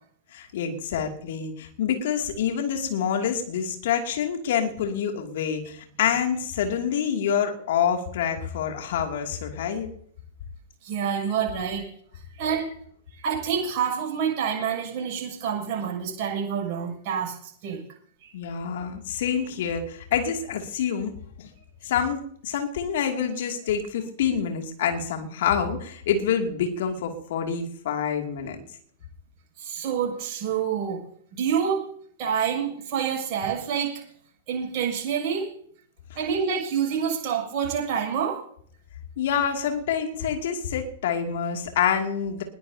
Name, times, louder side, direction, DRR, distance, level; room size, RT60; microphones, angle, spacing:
voice 1, 0.3-9.9 18.3-21.1 21.4-21.5 21.8-28.6 39.2-42.4, left 8 dB, 55° left, 3 dB, 2.6 m, -27 dB
voice 2, 10.8-11.8 12.4-12.7 13.1-17.8 18.2-18.3 29.6-31.0 31.3-31.8 32.2-33.9 34.5-35.5 36.1-38.4, right 7 dB, 40° right, -1 dB, 6.8 m, -27 dB
21.0 x 16.0 x 2.9 m, 0.63 s
figure-of-eight pair, 105°, 0 cm